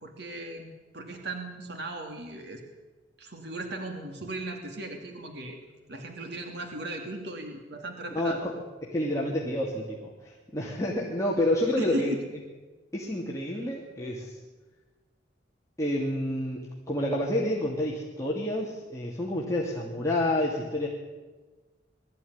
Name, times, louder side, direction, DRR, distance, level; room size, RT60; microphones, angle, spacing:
voice 1, 0.0-2.6 3.2-5.6 5.9-8.4 11.8-12.2, right 1 dB, 65° right, 3 dB, 2.8 m, -37 dB
voice 2, 8.1-8.5 8.8-12.1 12.9-14.4 15.8-16.6 16.9-20.9, left 1 dB, 15° left, -4 dB, 2.8 m, -29 dB
22.0 x 14.5 x 9.7 m, 1.3 s
head